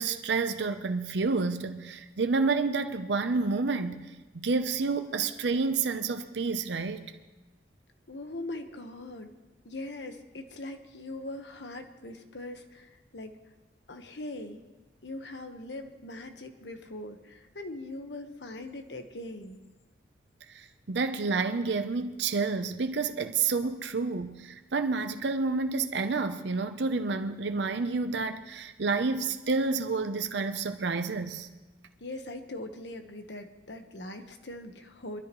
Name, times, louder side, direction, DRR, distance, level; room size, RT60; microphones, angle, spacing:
voice 1, 0.0-7.1 20.5-31.5, right 4 dB, 80° right, 0.7 m, -29 dB
voice 2, 8.1-9.3 9.6-13.4 13.9-14.6 15.0-19.6 32.0-35.2, left 2 dB, 80° left, 1.2 m, -41 dB
22.0 x 13.0 x 3.1 m
head